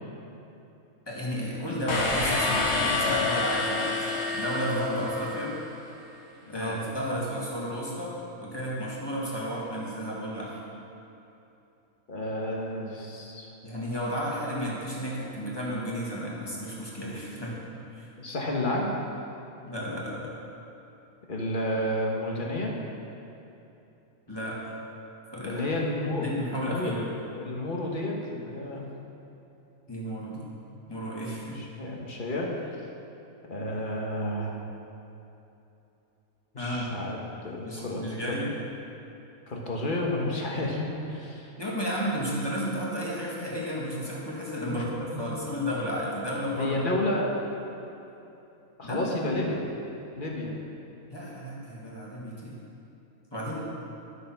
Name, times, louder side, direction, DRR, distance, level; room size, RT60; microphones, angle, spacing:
voice 1, 1.1-5.6 6.5-10.6 13.6-18.1 19.7-20.3 24.3-24.6 25.3-25.6 26.2-27.1 29.9-30.5 30.9-31.6 36.6-36.9 37.6-38.6 41.6-46.7 47.1-47.2 48.8-49.2 51.1-52.6 53.3-53.6, equal, 15° left, -6 dB, 2.1 m, -32 dB
sound 1, 1.9-5.6, left 3 dB, 55° left, 1.4 m, -28 dB
voice 2, 12.1-13.5 18.2-18.9 21.3-22.7 25.4-28.9 31.5-32.8 33.4-34.6 36.5-37.2 37.4-38.4 39.5-41.5 44.7-45.2 46.6-47.3 48.8-49.7 50.2-50.6, left 1 dB, 35° left, -1 dB, 1.5 m, -31 dB
11.5 x 6.6 x 5.9 m, 2.9 s
omnidirectional pair, 1.5 m